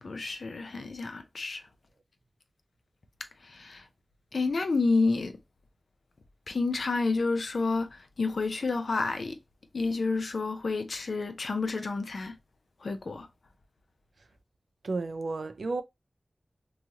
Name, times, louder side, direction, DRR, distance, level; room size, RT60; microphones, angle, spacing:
voice 1, 0.0-1.6 3.4-3.8 4.3-5.4 6.5-9.4 9.7-12.4 12.8-13.3, left 3 dB, 80° left, 0.5 m, -29 dB
voice 2, 14.8-15.8, right 3 dB, 85° right, 0.4 m, -32 dB
3.0 x 2.3 x 2.7 m
cardioid pair, 45°, 0 cm